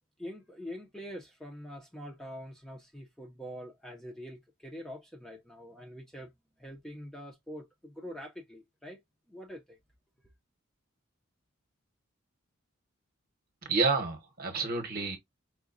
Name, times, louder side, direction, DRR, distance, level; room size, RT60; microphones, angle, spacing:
voice 1, 0.2-6.3 6.6-9.0 9.3-9.8, equal, 5° left, 0.6 m, -44 dB
voice 2, 13.6-15.2, right 4 dB, 45° right, 1.0 m, -29 dB
4.8 x 2.2 x 2.4 m
head